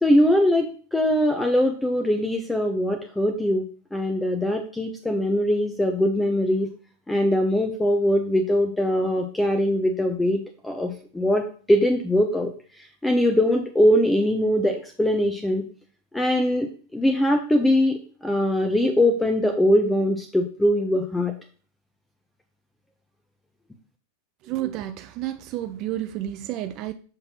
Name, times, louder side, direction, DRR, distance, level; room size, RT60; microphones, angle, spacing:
voice 1, 0.0-3.6 3.9-6.7 7.1-12.5 12.8-15.6 16.1-21.3, left 1 dB, 5° left, 0.7 m, -22 dB
voice 2, 24.4-26.9, right 13 dB, 40° right, 0.4 m, -30 dB
6.6 x 5.7 x 2.9 m
figure-of-eight pair, 90°, 0 cm